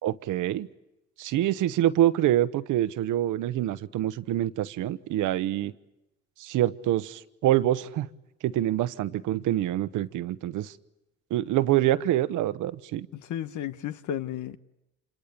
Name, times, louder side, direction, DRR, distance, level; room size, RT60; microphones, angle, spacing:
voice 1, 0.0-0.7 1.2-5.7 6.4-8.1 8.4-10.7 11.3-13.1, right 13 dB, 90° right, 1.0 m, -26 dB
voice 2, 13.1-14.6, left 10 dB, 75° left, 1.2 m, -33 dB
27.5 x 25.0 x 8.4 m
cardioid pair, 90°, 30 cm